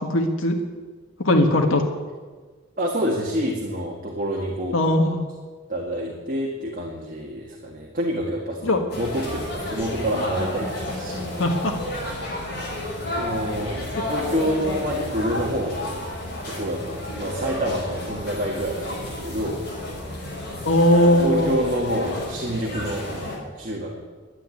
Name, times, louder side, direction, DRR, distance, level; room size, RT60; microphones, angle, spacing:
voice 1, 0.1-0.6 1.2-1.8 4.7-5.2 8.6-8.8 11.4-11.7 20.6-21.5, left 1 dB, 80° left, 4 dB, 1.5 m, -19 dB
voice 2, 2.8-4.8 5.7-11.5 13.2-16.1 16.5-18.9 19.2-19.6 21.2-23.1 23.6-24.0, equal, 40° right, -2 dB, 1.8 m, -27 dB
sound 1, 8.9-23.4, left 1 dB, 50° left, 5.0 m, -31 dB
11.5 x 9.0 x 9.8 m, 1.4 s
head